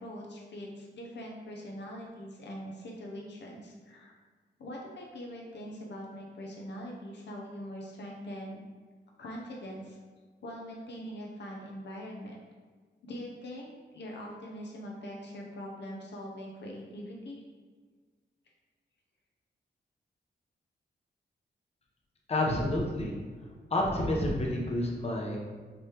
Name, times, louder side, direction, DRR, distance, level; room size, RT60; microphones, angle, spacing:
voice 1, 0.0-4.1 4.6-8.6 9.2-10.0 10.4-12.4 13.0-17.4, equal, 70° left, -1 dB, 0.6 m, -42 dB
voice 2, 22.3-23.2 23.7-25.4, left 1 dB, 35° left, -2 dB, 0.8 m, -29 dB
5.2 x 3.2 x 2.9 m, 1.5 s
wide cardioid pair, 120°, 19 cm